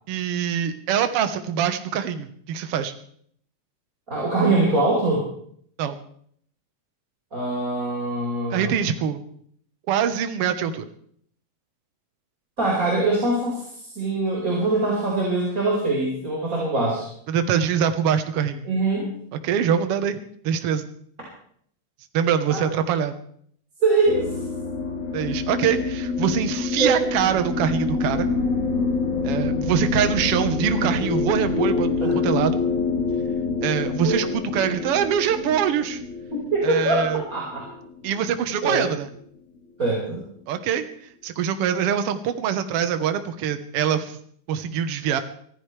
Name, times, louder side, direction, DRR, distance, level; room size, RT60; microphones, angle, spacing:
voice 1, 0.1-2.9 5.8-6.0 8.5-9.2 9.9-10.8 17.3-18.7 19.4-20.2 20.4-20.9 22.1-23.2 25.1-28.3 29.2-31.9 32.1-32.6 33.6-36.0 36.6-37.2 38.0-39.1 40.5-40.8 41.2-44.2 44.5-45.2, right 8 dB, 60° right, 8 dB, 1.7 m, -24 dB
voice 2, 4.1-5.2 7.3-8.8 12.6-17.1 18.6-19.1 22.5-22.6 23.8-24.3 26.8-27.1 32.0-32.2 34.0-34.2 36.3-37.7 38.6-38.9 39.8-40.2, right 2 dB, 25° right, -4 dB, 5.4 m, -23 dB
sound 1, 24.1-38.6, left 4 dB, 55° left, 5.3 m, -26 dB
24.5 x 15.5 x 3.3 m, 0.63 s
omnidirectional pair, 3.9 m